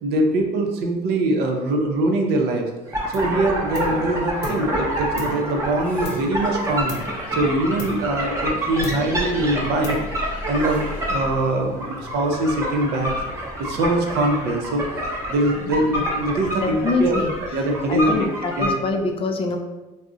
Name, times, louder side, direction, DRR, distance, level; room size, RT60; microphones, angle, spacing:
voice 1, 0.0-2.7 3.1-6.9 7.3-10.0 10.5-13.1 13.6-17.2 17.5-18.3 18.6-18.7, right 2 dB, 75° right, 3 dB, 0.5 m, -23 dB
sound 1, 2.9-18.7, equal, 15° right, 0.7 m, -27 dB
sound 2, 3.1-3.4 3.7-4.7 5.2-6.5 6.9-7.3 7.8-8.5 8.8-9.3 9.8-10.4, left 3 dB, 80° left, 0.6 m, -36 dB
sound 3, 5.8-18.4, left 1 dB, 10° left, 1.0 m, -41 dB
voice 2, 16.6-17.3 17.9-19.6, left 3 dB, 35° left, 4 dB, 0.4 m, -24 dB
2.4 x 2.0 x 3.7 m, 1.1 s
cardioid pair, 110°, 17 cm